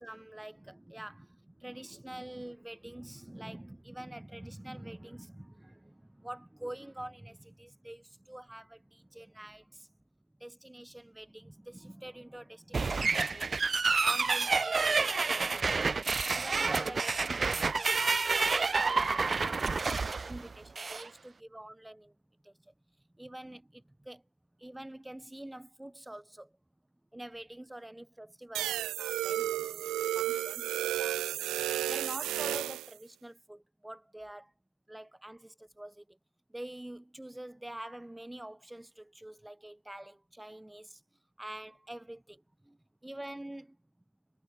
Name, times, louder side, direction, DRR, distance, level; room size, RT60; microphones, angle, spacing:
voice 1, 0.0-9.9 10.4-22.2 22.4-22.7 23.1-24.2 24.6-26.6 27.1-34.5 34.9-36.2 36.5-41.0 41.4-43.8, right 1 dB, 10° right, 3.9 m, -46 dB
sound 1, 12.7-21.1, right 4 dB, 30° right, 0.9 m, -29 dB
sound 2, 28.5-32.9, right 14 dB, 85° right, 1.3 m, -32 dB
cardioid pair, 90°, 0 cm